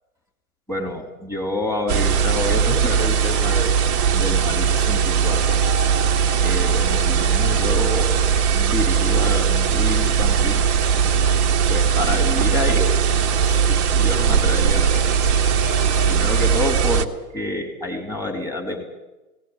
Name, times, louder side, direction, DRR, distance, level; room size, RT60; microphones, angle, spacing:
voice 1, 0.7-3.7 4.1-5.6 6.4-8.2 8.5-10.7 11.7-13.0 13.4-15.2 16.0-18.9, left 1 dB, 5° left, 3 dB, 2.8 m, -28 dB
sound 1, 1.9-16.8, left 2 dB, 25° left, 2.1 m, -39 dB
sound 2, 1.9-17.1, right 7 dB, 25° right, 1.1 m, -19 dB
18.5 x 18.0 x 9.7 m, 1.1 s
figure-of-eight pair, 130°, 46 cm